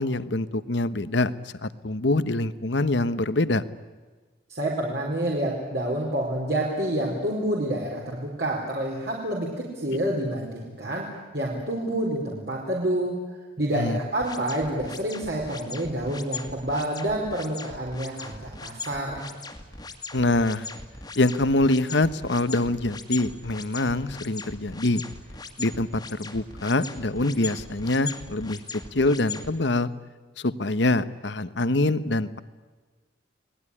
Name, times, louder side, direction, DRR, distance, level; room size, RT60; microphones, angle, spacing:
voice 1, 0.0-1.3 1.6-3.6 13.7-14.0 20.1-20.7 21.2-25.0 25.6-28.6 28.9-29.9 30.4-32.4, left 2 dB, 65° left, 14 dB, 1.1 m, -24 dB
voice 2, 4.5-13.2 13.6-19.3, right 1 dB, 55° right, -2 dB, 4.3 m, -28 dB
sound 1, 14.2-29.5, left 4 dB, 20° left, 2.0 m, -39 dB
30.0 x 19.5 x 10.0 m, 1.4 s
head